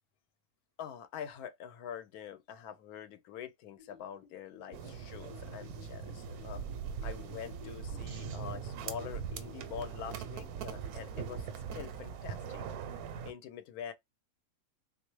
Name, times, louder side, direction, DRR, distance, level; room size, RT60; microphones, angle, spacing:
voice 1, 0.8-6.6 7.0-11.5 11.7-12.6 13.2-13.9, left 9 dB, 85° left, 1.1 m, -45 dB
sound 1, 3.8-11.5, left 7 dB, 40° left, 1.1 m, -56 dB
sound 2, 4.7-13.3, right 7 dB, 85° right, 1.1 m, -41 dB
3.6 x 2.6 x 3.0 m
omnidirectional pair, 1.5 m